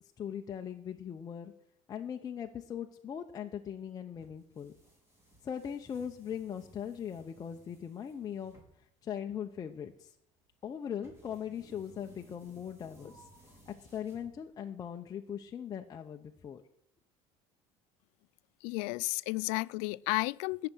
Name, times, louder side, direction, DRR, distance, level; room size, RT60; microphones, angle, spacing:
voice 1, 0.2-1.5 1.9-4.7 5.4-8.5 9.0-10.1 10.6-13.3 13.7-16.6, left 8 dB, 30° left, 0.8 m, -40 dB
sound 1, 4.1-14.7, right 2 dB, 20° right, 4.8 m, -60 dB
voice 2, 18.6-20.7, left 25 dB, 85° left, 0.4 m, -32 dB
18.5 x 6.8 x 6.2 m
cardioid pair, 125°, 12 cm